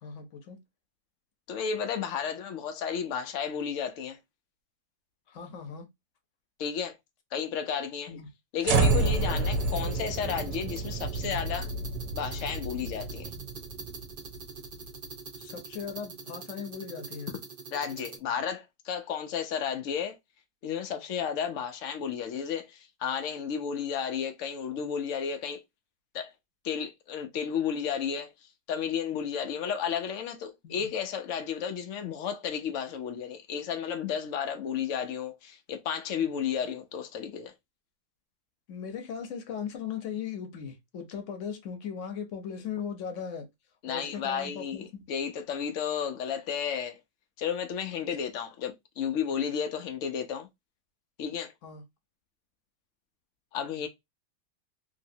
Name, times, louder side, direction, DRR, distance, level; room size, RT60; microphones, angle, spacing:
voice 1, 0.0-0.6 5.3-5.9 8.1-8.3 9.2-9.3 15.4-17.4 30.6-30.9 38.7-43.5 43.9-45.0 47.9-48.1 51.6-51.8, left 7 dB, 55° left, 0.9 m, -38 dB
voice 2, 1.5-4.2 6.6-7.0 7.3-8.1 8.5-11.7 12.1-13.3 17.7-20.2 20.6-25.6 26.1-26.3 26.6-28.3 28.7-37.5 43.8-44.8 45.1-47.0 47.4-50.5 51.2-51.5 53.5-53.9, left 7 dB, 85° left, 0.6 m, -32 dB
sound 1, 8.6-14.9, right 3 dB, 70° right, 1.1 m, -29 dB
sound 2, 8.7-18.2, right 4 dB, 50° right, 0.6 m, -44 dB
3.1 x 2.8 x 2.6 m
omnidirectional pair, 2.0 m